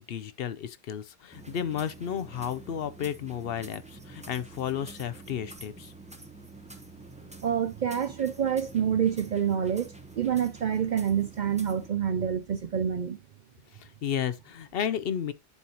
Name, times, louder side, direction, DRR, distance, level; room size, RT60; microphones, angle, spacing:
voice 1, 0.0-5.9 13.7-15.3, left 9 dB, 65° left, 0.8 m, -33 dB
sound 1, 1.3-11.9, right 3 dB, 5° right, 0.8 m, -47 dB
voice 2, 7.4-13.2, right 8 dB, 55° right, 0.5 m, -27 dB
10.5 x 4.3 x 2.8 m
omnidirectional pair, 1.1 m